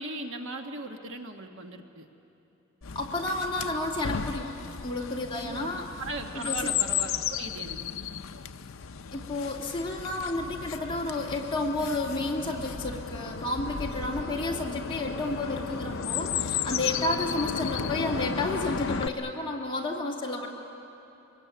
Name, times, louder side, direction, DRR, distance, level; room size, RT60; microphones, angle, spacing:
voice 1, 0.0-2.1 5.4-5.7 6.0-7.8, right 2 dB, 60° right, 4 dB, 1.6 m, -38 dB
Chirp tweet, 2.8-19.1, left 7 dB, 65° left, 0.6 m, -34 dB
voice 2, 2.9-5.9 6.3-6.7 9.1-20.5, left 2 dB, 25° left, -2 dB, 2.5 m, -31 dB
24.5 x 21.0 x 9.5 m, 2.9 s
head